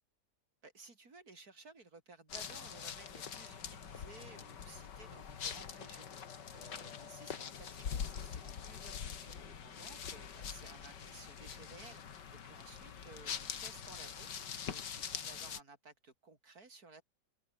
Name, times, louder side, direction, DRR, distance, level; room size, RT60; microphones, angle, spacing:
voice 1, 0.6-12.0 12.4-14.3 14.6-17.0, right 3 dB, 55° right, 4.5 m, -57 dB
sound 1, 2.3-15.6, left 7 dB, 75° left, 2.3 m, -44 dB
omnidirectional pair, 1.9 m